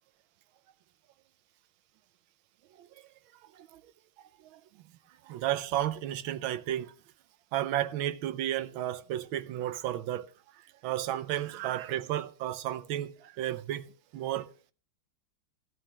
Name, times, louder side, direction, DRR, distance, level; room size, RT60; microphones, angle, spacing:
voice 1, 5.2-6.9 7.5-10.3 10.8-14.5, right 12 dB, 85° right, 1.5 m, -33 dB
16.0 x 13.0 x 2.9 m
omnidirectional pair, 2.1 m